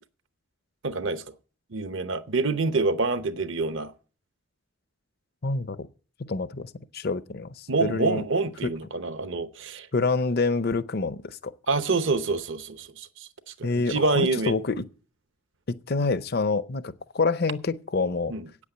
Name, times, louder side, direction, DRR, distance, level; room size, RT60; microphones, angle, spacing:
voice 1, 0.8-1.2 1.7-3.9 7.7-9.9 11.7-13.3 13.6-14.6 18.3-18.5, right 3 dB, 65° right, 0.9 m, -27 dB
voice 2, 5.4-5.9 6.2-8.2 9.9-11.5 13.6-14.8 15.7-18.3, left 3 dB, 50° left, 0.6 m, -27 dB
8.6 x 8.5 x 8.8 m
head